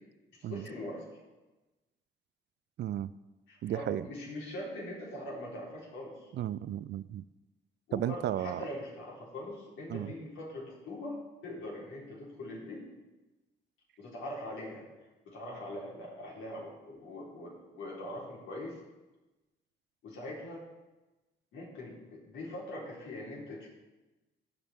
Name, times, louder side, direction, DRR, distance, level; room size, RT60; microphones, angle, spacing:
voice 1, 0.4-1.2 3.5-6.3 7.9-11.2 11.4-12.8 14.0-14.8 15.2-18.8 20.0-20.6 21.5-23.7, left 1 dB, 80° left, -4 dB, 3.9 m, -42 dB
voice 2, 2.8-3.1 3.6-4.1 6.3-7.2 7.9-8.6 9.9-10.1, right 12 dB, 60° right, 17 dB, 0.4 m, -34 dB
16.0 x 5.4 x 4.4 m, 1.1 s
cardioid pair, 90°, 20 cm